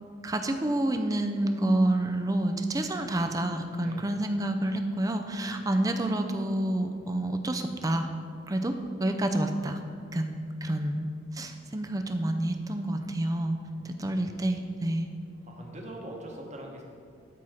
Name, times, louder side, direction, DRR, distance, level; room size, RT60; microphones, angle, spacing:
voice 1, 0.2-8.1 8.5-9.8 10.1-11.1 11.3-13.6 13.8-15.1, right 1 dB, 20° right, 6 dB, 0.5 m, -28 dB
voice 2, 13.7-14.4 15.5-16.8, right 1 dB, 40° right, 0 dB, 1.2 m, -43 dB
12.5 x 4.3 x 5.0 m, 2.3 s
head